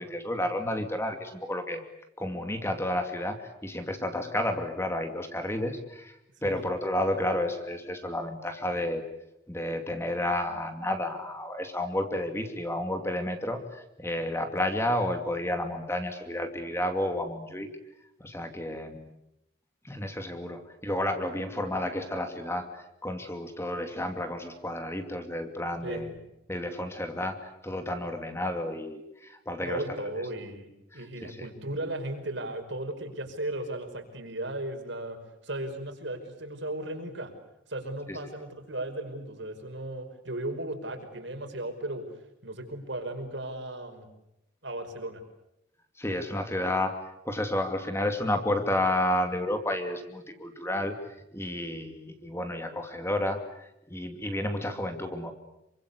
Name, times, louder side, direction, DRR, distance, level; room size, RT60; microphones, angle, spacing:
voice 1, 0.0-1.8 2.2-6.2 6.4-9.0 9.5-17.7 18.2-19.1 19.8-26.1 26.5-29.8 30.9-31.5 38.1-38.2 46.0-47.0 47.2-51.0 51.3-55.3, left 1 dB, 15° left, 6 dB, 2.6 m, -31 dB
voice 2, 29.6-35.2 35.4-37.3 37.7-42.1 42.4-44.1 44.6-45.2, right 1 dB, 65° right, 5 dB, 5.4 m, -36 dB
28.0 x 24.5 x 8.3 m, 0.86 s
head